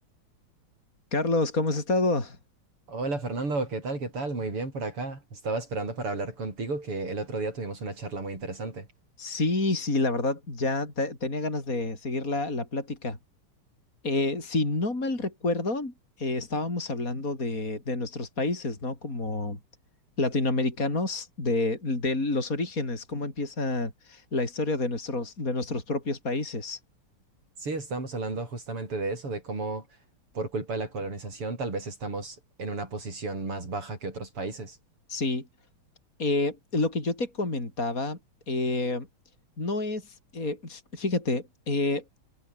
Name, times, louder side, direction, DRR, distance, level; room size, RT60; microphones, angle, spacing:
voice 1, 1.1-2.4 9.2-13.2 14.0-19.6 20.2-26.8 35.1-35.5 36.2-38.2 38.5-39.1 39.6-42.0, left 2 dB, 40° left, 5.5 m, -28 dB
voice 2, 2.9-8.9 27.6-29.9 30.3-34.8, right 3 dB, 90° right, 7.7 m, -33 dB
omnidirectional pair, 2.4 m